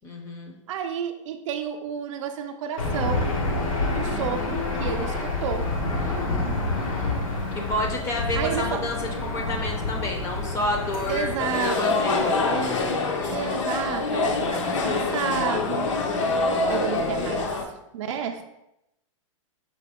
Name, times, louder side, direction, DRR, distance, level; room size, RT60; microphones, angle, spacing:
voice 1, 0.0-0.5 4.0-4.6 6.2-12.4 13.2-13.6 16.5-17.0, left 1 dB, 15° left, 1 dB, 0.5 m, -31 dB
voice 2, 0.7-3.3 3.9-5.7 8.3-8.8 11.1-12.1 12.4-12.8 13.3-16.0 16.7-17.5 17.9-18.4, right 8 dB, 65° right, 5 dB, 0.4 m, -31 dB
Aircraft / Engine, 2.8-11.4, left 2 dB, 90° left, 1.1 m, -28 dB
sound 1, 11.4-17.6, left 3 dB, 65° left, 0.7 m, -25 dB
5.0 x 2.8 x 3.5 m, 0.87 s
hypercardioid pair, 150°, 17 cm